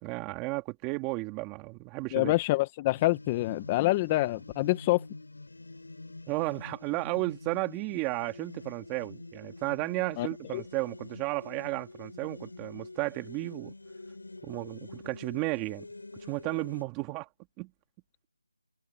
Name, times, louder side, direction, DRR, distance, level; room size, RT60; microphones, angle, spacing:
voice 1, 0.0-2.3 6.3-13.7 14.4-15.8 16.3-17.3 17.6-17.7, right 24 dB, 10° right, 3.1 m, -33 dB
voice 2, 2.1-5.0 10.2-10.3 10.5-10.6, left 19 dB, 15° left, 0.8 m, -26 dB
sound 1, 3.0-16.8, left 2 dB, 85° left, 5.6 m, -46 dB
open air
figure-of-eight pair, 170°, 0 cm